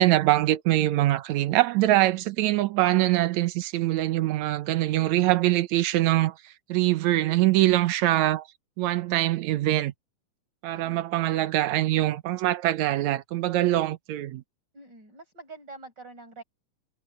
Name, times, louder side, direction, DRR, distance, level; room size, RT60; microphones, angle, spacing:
voice 1, 0.0-6.3 6.7-8.4 8.8-9.9 10.6-14.4, right 15 dB, 75° right, 2.0 m, -23 dB
voice 2, 10.7-11.0 13.7-13.9 14.7-16.4, right 3 dB, 30° right, 7.5 m, -45 dB
omnidirectional pair, 3.7 m